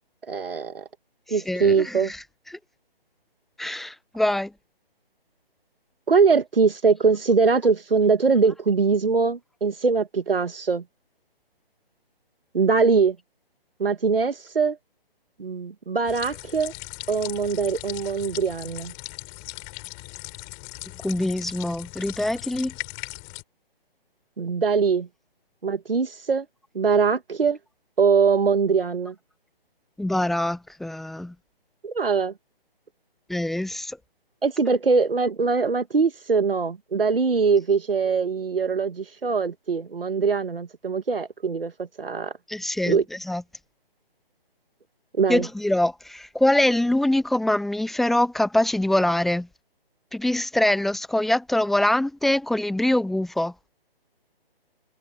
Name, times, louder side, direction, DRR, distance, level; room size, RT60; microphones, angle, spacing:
voice 1, 0.3-0.9 1.3-2.1 6.1-10.8 12.5-13.2 13.8-14.8 15.4-16.7 17.1-18.9 24.4-25.1 25.6-26.5 26.7-27.6 28.0-29.2 31.8-32.3 34.4-42.3 42.8-43.1 45.2-45.5, right 5 dB, 65° right, 1.8 m, -22 dB
voice 2, 1.5-2.2 3.6-4.5 21.0-22.7 30.0-31.3 33.3-34.0 42.5-43.0 43.3-43.4 45.3-49.5 50.1-53.5, left 1 dB, ahead, 0.7 m, -24 dB
sound 1, 16.1-23.4, left 40 dB or more, 20° left, 4.2 m, -39 dB
figure-of-eight pair, 140°, 30 cm